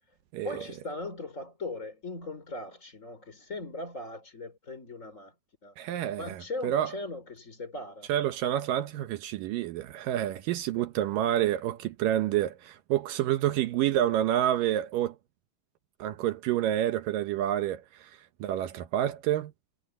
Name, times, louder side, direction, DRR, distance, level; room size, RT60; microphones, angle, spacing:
voice 1, 0.4-5.3 5.6-5.7 6.1-8.1 10.7-10.9, left 2 dB, 20° left, 3.9 m, -39 dB
voice 2, 5.8-6.9 8.1-15.2 16.0-18.1 18.4-19.5, right 12 dB, 75° right, 2.1 m, -28 dB
omnidirectional pair, 4.8 m